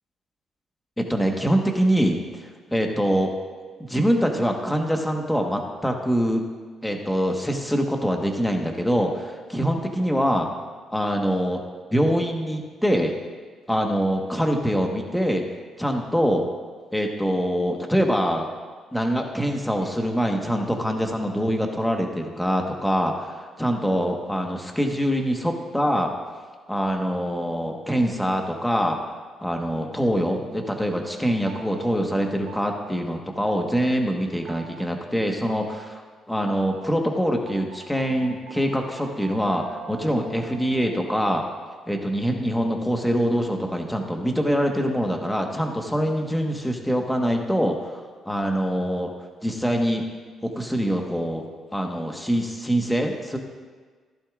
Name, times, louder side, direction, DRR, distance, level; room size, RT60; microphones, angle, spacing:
voice 1, 1.0-3.3 3.8-6.4 6.8-10.5 10.9-11.6 11.9-13.1 13.7-15.4 15.8-16.4 16.9-18.5 18.9-26.1 26.7-29.0 29.4-41.4 41.9-49.1 49.4-50.0 50.4-51.5 51.7-53.4, equal, 5° left, 2 dB, 1.4 m, -24 dB
sound 1, 31.5-31.8 32.5-32.8 33.5-33.8 34.5-34.8 35.5-35.8 36.5-36.8 37.5-42.5, right 7 dB, 80° right, 1.3 m, -43 dB
14.0 x 11.5 x 2.5 m, 1.5 s
cardioid pair, 90°, 0 cm